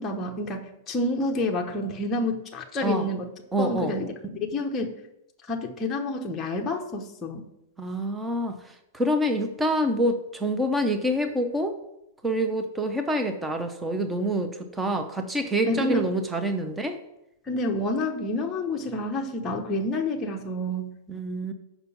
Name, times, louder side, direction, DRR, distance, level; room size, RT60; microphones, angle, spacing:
voice 1, 0.0-3.3 3.6-4.1 4.5-4.9 5.5-7.4 15.7-16.1 17.5-21.0, left 1 dB, 15° left, 1 dB, 1.0 m, -28 dB
voice 2, 3.5-4.0 7.8-8.6 8.9-11.8 12.2-17.0 21.1-21.5, right 1 dB, 10° right, 6 dB, 0.8 m, -26 dB
6.7 x 5.7 x 7.0 m, 0.83 s
supercardioid pair, 155°, 0 cm